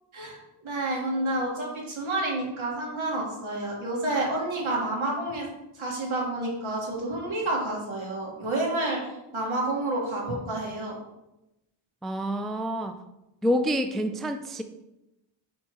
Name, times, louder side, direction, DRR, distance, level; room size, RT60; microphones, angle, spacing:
voice 1, 0.1-5.5 5.7-11.0, right 2 dB, 75° right, -3 dB, 2.0 m, -29 dB
voice 2, 12.0-13.0 13.4-14.6, equal, ahead, 7 dB, 0.4 m, -27 dB
4.7 x 4.3 x 4.7 m, 0.92 s
cardioid pair, 70°, 48 cm